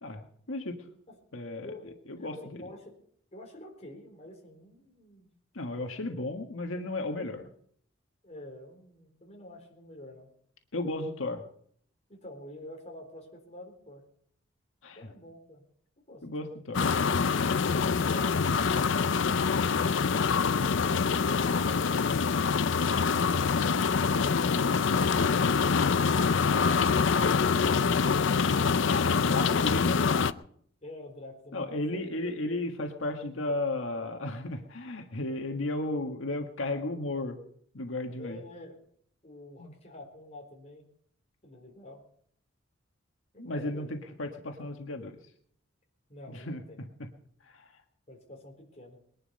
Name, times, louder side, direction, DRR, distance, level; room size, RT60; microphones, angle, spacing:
voice 1, 0.0-0.8 1.3-1.7 2.1-2.6 5.5-7.5 10.7-11.4 14.8-15.1 16.2-16.9 28.9-30.3 31.5-37.4 37.7-38.4 39.6-39.7 43.4-45.1 46.3-46.9 47.5-47.7, left 2 dB, 85° left, 4 dB, 1.6 m, -34 dB
voice 2, 1.6-2.9 3.3-5.3 8.2-10.3 12.1-14.0 15.0-15.6 16.1-16.5 30.8-32.2 38.2-38.8 39.2-40.9 41.4-42.0 43.3-44.0 46.1-46.8 48.1-49.0, left 1 dB, 35° left, 1 dB, 4.1 m, -48 dB
sound 1, 16.7-30.3, left 5 dB, 70° left, 0.5 m, -25 dB
21.0 x 11.0 x 5.5 m, 0.63 s
head